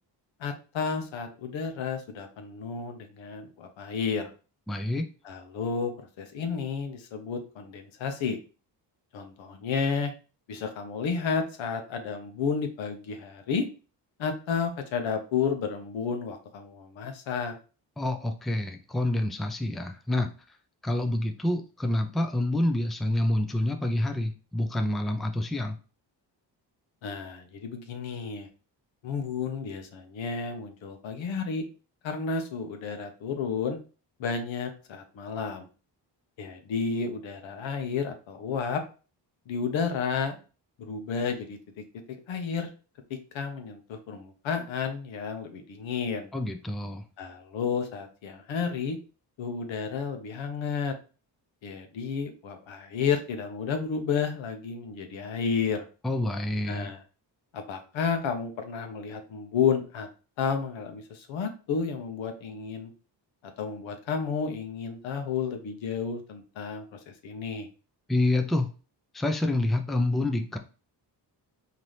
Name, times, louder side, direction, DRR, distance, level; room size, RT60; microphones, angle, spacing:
voice 1, 0.4-4.3 5.2-8.4 9.1-10.1 10.5-13.7 14.2-17.5 27.0-28.5 29.0-31.6 32.0-33.8 34.2-35.7 36.4-38.8 39.5-40.4 40.8-42.7 43.1-46.3 47.2-49.0 49.4-50.9 51.6-55.9 56.7-57.0 57.5-60.1 60.4-62.9 63.6-67.7, left 6 dB, 85° left, 6 dB, 0.9 m, -31 dB
voice 2, 4.7-5.1 18.0-20.3 20.8-25.8 46.3-47.0 56.0-56.9 68.1-68.7 69.1-70.6, left 1 dB, ahead, 6 dB, 0.4 m, -27 dB
4.0 x 2.8 x 3.1 m, 0.35 s
cardioid pair, 90°, 45 cm